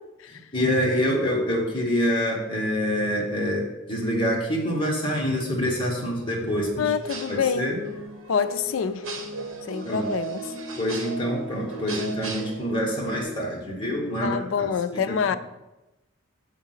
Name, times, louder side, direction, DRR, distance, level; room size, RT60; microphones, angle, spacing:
voice 1, 0.0-0.3 6.8-7.7 8.3-9.1 9.7-10.4 14.2-15.4, left 6 dB, 70° left, 0.4 m, -26 dB
voice 2, 0.5-6.9 7.3-7.8 9.8-10.1 10.7-15.2, equal, 25° left, 1.4 m, -26 dB
sound 1, 7.0-13.2, right 2 dB, 80° right, 1.1 m, -35 dB
7.3 x 3.6 x 5.6 m
head